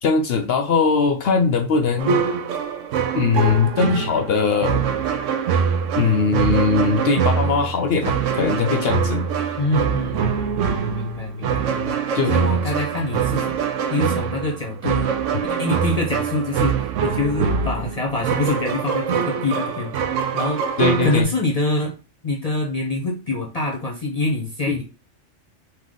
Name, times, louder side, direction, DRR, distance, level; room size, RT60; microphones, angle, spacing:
voice 1, 0.0-2.3 3.1-4.9 6.0-9.3 12.1-12.4 20.8-21.3 24.7-24.8, left 5 dB, 65° left, 6 dB, 0.7 m, -20 dB
sound 1, 2.0-21.2, right 7 dB, 85° right, 1.0 m, -24 dB
voice 2, 9.6-10.3 10.7-12.0 12.3-13.6 13.9-15.1 15.5-19.9 20.3-20.8 21.0-22.0 22.2-24.8, left 2 dB, 35° left, -1 dB, 0.8 m, -25 dB
3.7 x 2.9 x 3.8 m, 0.34 s
omnidirectional pair, 1.2 m